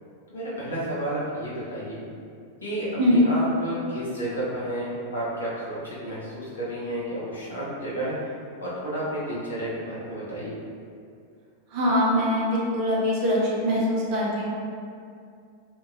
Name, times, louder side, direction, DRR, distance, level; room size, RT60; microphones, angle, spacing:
voice 1, 0.3-2.0 2.6-8.1 8.6-10.5, right 1 dB, 75° left, -7 dB, 0.8 m, -31 dB
voice 2, 11.7-13.4 13.6-14.4, equal, 45° right, -5 dB, 0.7 m, -22 dB
2.8 x 2.6 x 2.4 m, 2.3 s
figure-of-eight pair, 90°, 0 cm